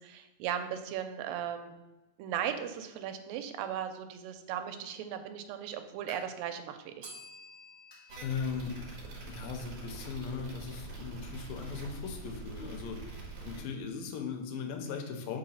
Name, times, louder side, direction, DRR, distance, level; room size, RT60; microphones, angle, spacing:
voice 1, 0.0-1.7 2.2-7.1, right 9 dB, 90° right, 7 dB, 2.3 m, -37 dB
sound 1, 6.1-6.5 7.0-7.1 7.9-8.2 8.5-8.6 9.1-9.2 10.3-10.4, right 1 dB, 10° left, 1.6 m, -55 dB
Bell, 7.0-9.8, left 1 dB, 35° right, 2.4 m, -53 dB
sound 2, 8.1-13.6, right 3 dB, 55° right, 2.1 m, -44 dB
voice 2, 8.2-8.8 9.2-15.4, left 5 dB, 85° left, 4 dB, 2.4 m, -38 dB
5.4 x 3.9 x 5.5 m, 1.1 s
omnidirectional pair, 4.0 m